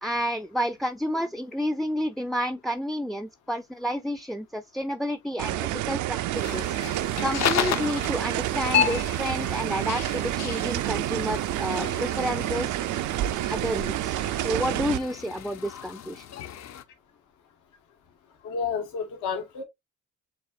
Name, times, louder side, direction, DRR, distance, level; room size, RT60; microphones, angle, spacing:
voice 1, 0.0-6.7 7.2-12.7 13.2-16.3, equal, ahead, 0.3 m, -30 dB
sound 1, 5.4-15.0, right 14 dB, 75° right, 0.4 m, -29 dB
sound 2, 6.3-16.8, left 9 dB, 60° left, 0.7 m, -33 dB
voice 2, 18.4-19.6, left 6 dB, 90° left, 1.3 m, -30 dB
7.1 x 2.7 x 2.4 m
cardioid pair, 90°, 30 cm